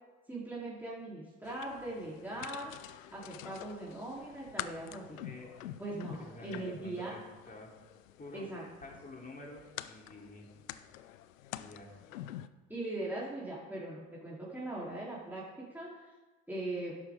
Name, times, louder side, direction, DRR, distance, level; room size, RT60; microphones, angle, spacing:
voice 1, 0.3-2.7 3.1-5.2 5.8-7.1 8.3-8.6 12.7-16.1 16.5-16.9, right 2 dB, 5° right, -7 dB, 3.6 m, -40 dB
sound 1, 1.4-12.5, left 13 dB, 90° left, 0.5 m, -47 dB
voice 2, 5.2-5.8 6.2-7.2 7.5-7.7 8.2-8.5 8.8-10.5 11.5-11.9, left 2 dB, 20° left, -1 dB, 3.4 m, -49 dB
12.0 x 11.0 x 3.7 m, 1.2 s
hypercardioid pair, 55°, 38 cm